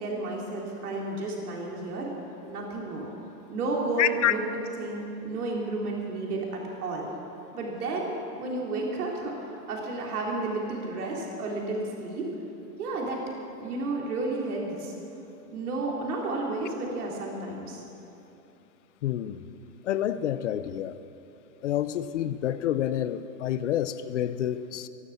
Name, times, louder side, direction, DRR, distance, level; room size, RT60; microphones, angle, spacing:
voice 1, 0.0-2.1 2.5-3.1 3.5-4.4 4.8-7.1 7.5-12.3 12.8-13.2 13.6-14.9 15.5-17.8, right 2 dB, 70° right, -2 dB, 3.6 m, -32 dB
voice 2, 4.0-4.3 19.0-19.5 19.8-21.0 21.6-24.9, left 11 dB, 50° left, 13 dB, 0.7 m, -28 dB
14.0 x 12.0 x 7.2 m, 3.0 s
hypercardioid pair, 165°, 47 cm